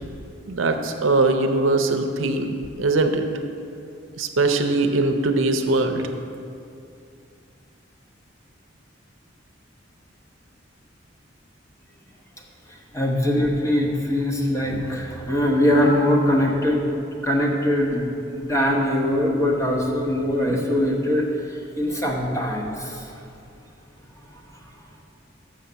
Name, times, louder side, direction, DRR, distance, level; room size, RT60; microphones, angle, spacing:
voice 1, 0.5-2.5 2.8-3.2 4.2-6.0, right 2 dB, 80° right, 6 dB, 0.6 m, -21 dB
voice 2, 12.7-16.8 17.2-23.1 24.5-24.6, left 1 dB, 15° left, -1 dB, 1.0 m, -22 dB
6.4 x 6.4 x 6.9 m, 2.6 s
head